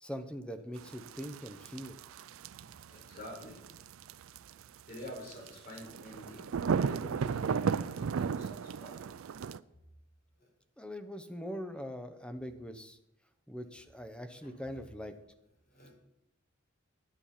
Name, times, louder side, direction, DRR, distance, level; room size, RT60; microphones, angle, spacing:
voice 1, 0.0-2.0 10.8-13.0 13.5-15.1, equal, 5° left, 8 dB, 0.8 m, -42 dB
sound 1, 0.8-9.6, right 6 dB, 80° right, 0.4 m, -35 dB
voice 2, 2.9-3.6 4.9-9.0 9.3-9.5 10.4-10.5 14.4-14.5 15.7-15.9, equal, 45° left, -1 dB, 4.9 m, -48 dB
11.0 x 8.6 x 5.7 m, 0.83 s
head